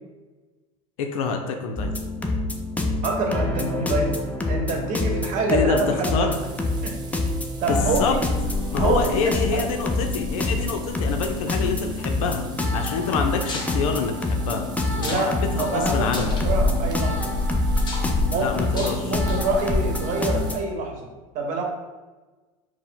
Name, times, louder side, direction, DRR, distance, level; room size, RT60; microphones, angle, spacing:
voice 1, 1.0-1.9 5.5-6.3 7.7-8.1 8.7-12.5 12.7-14.7 15.0-16.4 18.3-19.0, left 5 dB, 75° left, 4 dB, 0.5 m, -26 dB
sound 1, 1.8-20.6, left 2 dB, 10° left, 0.4 m, -27 dB
voice 2, 3.0-4.1 4.5-6.3 6.8-6.9 7.6-8.2 8.8-9.6 15.0-17.3 18.2-21.1 21.3-21.6, right 3 dB, 45° right, 2 dB, 1.0 m, -26 dB
sound 2, 6.3-20.6, left 1 dB, 25° right, 0.7 m, -31 dB
sound 3, 13.5-13.7 14.9-15.3 15.6-15.7 16.1-16.5 17.8-18.1 18.7-19.0 19.3-19.6, left 2 dB, 25° left, 0.9 m, -34 dB
4.7 x 2.1 x 3.8 m, 1.2 s
supercardioid pair, 110°, 18 cm